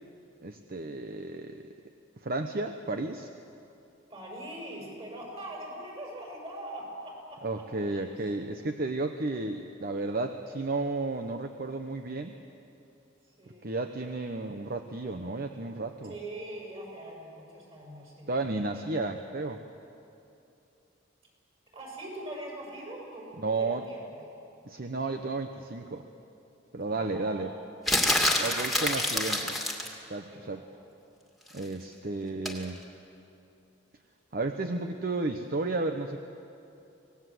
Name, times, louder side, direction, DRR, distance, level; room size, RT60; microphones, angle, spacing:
voice 1, 0.4-1.7 2.2-3.3 7.4-12.4 13.6-16.1 18.3-19.6 23.4-23.8 24.6-26.0 26.7-27.5 28.4-29.5 30.1-30.6 31.5-32.8 34.3-36.2, right 2 dB, 50° right, 6 dB, 0.9 m, -33 dB
voice 2, 4.1-7.4 7.9-8.1 8.3-8.5 13.4-13.8 16.1-18.4 21.7-24.0 26.9-27.5 28.7-29.4 30.3-30.6, right 1 dB, 35° right, -2 dB, 7.1 m, -42 dB
sound 1, 27.9-29.9 32.5-32.6, left 1 dB, ahead, 2.3 m, -26 dB
25.5 x 19.0 x 7.8 m, 2.7 s
head